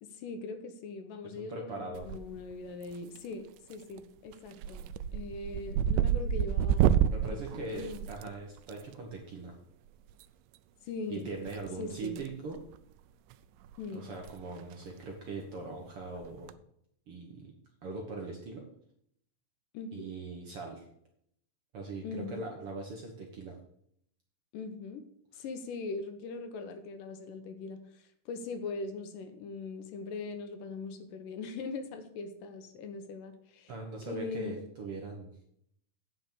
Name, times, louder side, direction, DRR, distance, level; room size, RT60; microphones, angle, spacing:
voice 1, 0.0-4.8 5.1-6.9 7.3-8.1 10.8-11.3 11.8-12.2 13.8-14.0 19.7-20.1 22.0-22.5 24.5-25.0 25.3-33.7 34.1-34.6, left 4 dB, 75° left, 7 dB, 2.5 m, -41 dB
voice 2, 1.2-2.1 7.1-9.5 11.1-12.6 13.9-16.5 17.1-17.5 17.8-18.7 19.9-20.8 21.7-23.5 25.3-25.4 33.7-35.3, right 3 dB, 55° right, 1 dB, 1.7 m, -41 dB
sound 1, 1.9-2.5 2.8-3.3 3.7-4.0 4.3-8.7 10.1-10.2 11.5-12.3 12.5-12.8 13.3-13.4 13.6-13.7 14.1-14.3 14.6-14.7 16.2-16.5, right 9 dB, 80° right, 2.1 m, -29 dB
9.0 x 5.9 x 6.9 m, 0.70 s
omnidirectional pair, 4.1 m